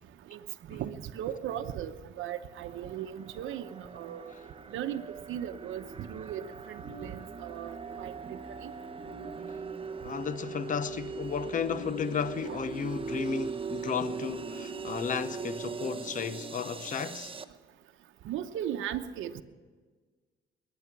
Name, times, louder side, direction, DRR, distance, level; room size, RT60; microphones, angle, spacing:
voice 1, 0.7-4.4 4.7-5.0 5.3-8.7 12.4-12.6 18.2-19.4, right 10 dB, 80° right, 0.9 m, -37 dB
sound 1, 2.5-17.4, right 4 dB, 25° right, 0.9 m, -40 dB
voice 2, 10.0-17.4, left 6 dB, 40° left, 0.8 m, -34 dB
21.5 x 9.4 x 6.0 m
cardioid pair, 90°, 20 cm